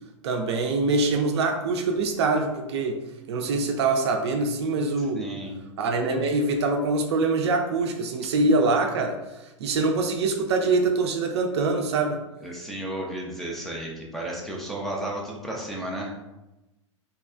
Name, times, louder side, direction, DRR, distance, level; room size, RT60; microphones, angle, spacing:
voice 1, 0.2-3.0 3.3-5.3 5.8-9.2 9.6-12.2, right 3 dB, 55° right, 4 dB, 0.4 m, -24 dB
voice 2, 5.0-5.6 12.4-16.1, right 1 dB, ahead, -3 dB, 0.5 m, -33 dB
3.0 x 2.7 x 2.4 m, 0.98 s
figure-of-eight pair, 95°, 17 cm